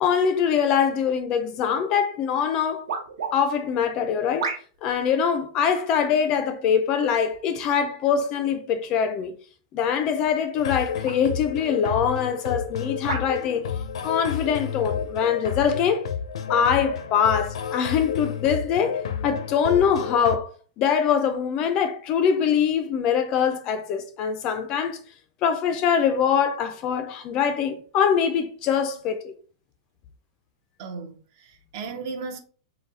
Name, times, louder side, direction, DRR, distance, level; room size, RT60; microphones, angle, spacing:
voice 1, 0.0-2.9 3.3-4.5 4.8-9.3 9.7-13.7 14.0-16.1 16.5-20.5 20.8-25.0 25.4-29.3, left 7 dB, 25° left, 0.4 m, -23 dB
sound 1, 2.9-3.3 4.4-4.9 5.7-6.0 7.0-7.4 8.2-8.3 10.2-10.5 11.0-11.2 12.0-12.2 13.1-13.3 14.1-14.3, right 5 dB, 70° right, 1.0 m, -33 dB
sound 2, 10.6-20.4, left 7 dB, 85° left, 0.6 m, -31 dB
voice 2, 30.8-32.4, right 4 dB, 40° right, 0.5 m, -35 dB
4.0 x 2.7 x 3.8 m
supercardioid pair, 175°, 3 cm